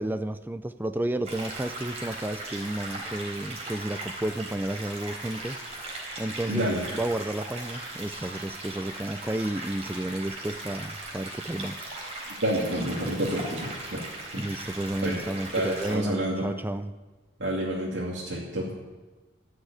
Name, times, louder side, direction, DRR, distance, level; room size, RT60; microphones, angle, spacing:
voice 1, 0.0-5.6 6.2-6.7 6.9-11.8 14.4-16.9, right 1 dB, 10° right, 11 dB, 0.4 m, -32 dB
sound 1, 1.2-16.0, right 2 dB, 35° right, 3.7 m, -38 dB
voice 2, 6.5-6.8 12.4-14.1 14.3-14.4 15.0-15.2 15.5-16.5 17.4-18.7, right 1 dB, 75° right, -5 dB, 2.4 m, -29 dB
14.5 x 6.6 x 8.6 m, 1.2 s
head